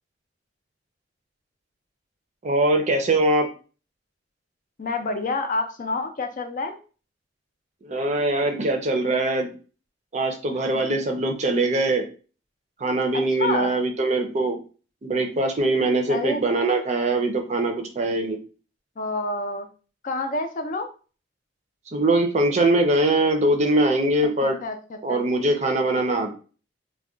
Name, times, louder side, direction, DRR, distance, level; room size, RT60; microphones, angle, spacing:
voice 1, 2.4-3.5 7.8-9.5 10.1-12.1 12.8-14.6 15.0-18.4 21.9-24.6 25.0-26.3, right 2 dB, 40° right, 5 dB, 0.5 m, -22 dB
voice 2, 4.8-6.8 10.7-10.8 13.1-13.7 16.1-16.4 19.0-19.7 20.0-20.9 24.4-25.2, left 3 dB, 45° left, 6 dB, 0.4 m, -28 dB
2.3 x 2.2 x 3.7 m, 0.37 s
head